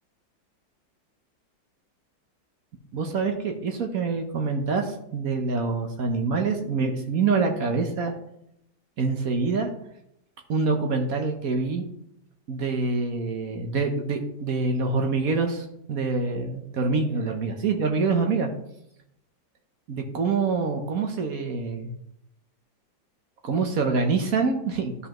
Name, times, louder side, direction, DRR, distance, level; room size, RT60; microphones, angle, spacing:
voice 1, 2.9-8.2 9.0-9.7 10.5-11.8 12.5-18.5 19.9-21.9 23.4-25.1, right 4 dB, 55° right, 4 dB, 1.2 m, -26 dB
12.5 x 5.5 x 3.0 m, 0.78 s
omnidirectional pair, 2.1 m